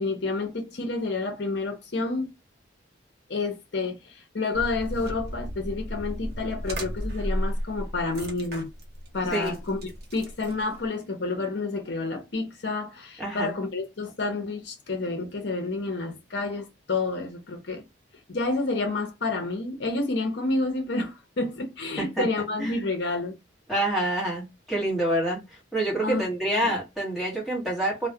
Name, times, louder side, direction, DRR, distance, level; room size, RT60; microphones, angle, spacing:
voice 1, 0.0-2.3 3.3-8.7 9.1-17.8 18.3-23.4 26.0-26.2 26.6-26.8, left 3 dB, 60° left, 0.6 m, -29 dB
sound 1, 4.5-10.9, equal, 50° right, 0.6 m, -34 dB
voice 2, 13.2-13.5 22.0-22.3 22.6-22.8 23.7-25.4 25.7-28.1, right 1 dB, ahead, 1.0 m, -27 dB
2.2 x 2.1 x 2.7 m
head